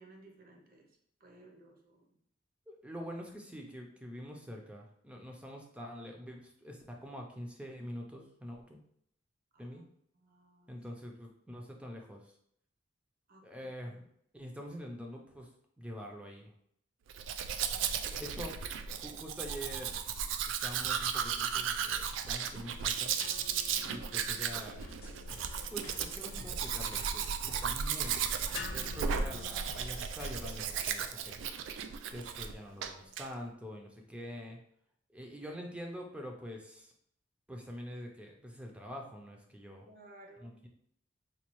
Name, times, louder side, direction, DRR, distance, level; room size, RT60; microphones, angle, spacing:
voice 1, 0.0-2.1 9.5-9.8 10.2-10.7 13.3-14.0 17.7-18.3 23.8-24.1 39.9-40.7, right 2 dB, 50° right, 1 dB, 0.7 m, -58 dB
voice 2, 2.7-8.8 9.6-9.8 10.7-12.2 13.4-14.1 14.3-15.5 15.8-16.5 18.0-18.6 19.0-20.0 20.6-23.1 23.8-24.8 25.7-28.3 28.7-31.4 32.1-34.6 35.1-36.9 37.5-39.9 40.4-40.7, equal, 5° right, 1 dB, 0.5 m, -45 dB
Domestic sounds home sounds, 17.1-32.5 32.8-33.3, right 7 dB, 75° right, 0.3 m, -35 dB
sound 1, 22.5-30.4, left 7 dB, 75° left, 0.3 m, -51 dB
sound 2, 24.8-30.6, left 1 dB, 55° left, 0.8 m, -50 dB
4.2 x 2.3 x 3.0 m, 0.70 s
head